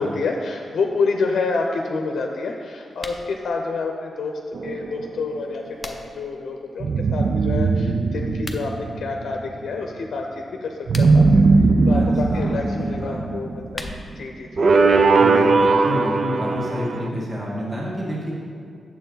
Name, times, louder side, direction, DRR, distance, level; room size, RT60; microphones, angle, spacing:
voice 1, 0.0-4.3 4.6-10.2 10.6-11.5 11.9-13.9 14.2-14.7, left 4 dB, 70° left, 2 dB, 0.6 m, -28 dB
sound 1, 2.9-3.3 5.3-6.3 8.3-8.7 10.7-11.3 13.3-14.3, left 2 dB, 15° left, 0.6 m, -38 dB
sound 2, 4.5-5.5 6.8-9.4 10.9-14.0 14.6-17.1, right 3 dB, 45° right, 0.4 m, -19 dB
voice 2, 11.9-13.2 15.2-18.3, equal, 25° right, -6 dB, 2.0 m, -29 dB
9.0 x 7.2 x 4.0 m, 2.5 s
wide cardioid pair, 150°, 0 cm